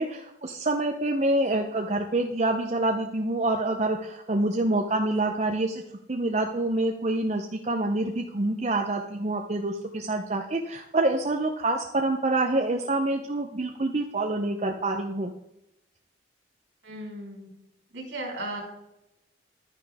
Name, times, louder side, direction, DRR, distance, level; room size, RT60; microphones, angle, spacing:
voice 1, 0.0-5.8 6.1-15.3, right 2 dB, 35° right, 3 dB, 0.7 m, -26 dB
voice 2, 16.8-17.5 17.9-18.6, right 1 dB, 75° right, -1 dB, 3.7 m, -36 dB
11.0 x 9.9 x 3.5 m, 0.87 s
head